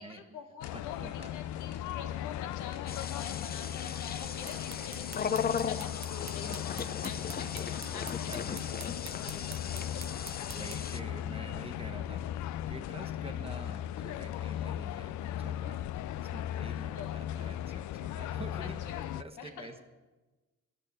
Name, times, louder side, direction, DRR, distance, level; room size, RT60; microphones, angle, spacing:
voice 1, 0.0-10.1 16.9-17.2 18.6-19.7, left 7 dB, 90° left, 5 dB, 1.5 m, -47 dB
sound 1, 0.6-19.2, left 11 dB, 70° left, 0.4 m, -37 dB
voice 2, 0.6-1.4 1.8-2.0 8.3-8.7 10.5-19.8, right 2 dB, 20° right, 7 dB, 1.2 m, -48 dB
sound 2, 2.9-11.0, left 6 dB, 30° left, 0.6 m, -37 dB
sound 3, 4.2-11.0, right 9 dB, 60° right, 0.8 m, -49 dB
11.5 x 6.7 x 9.3 m, 1.2 s
cardioid pair, 90°, 30 cm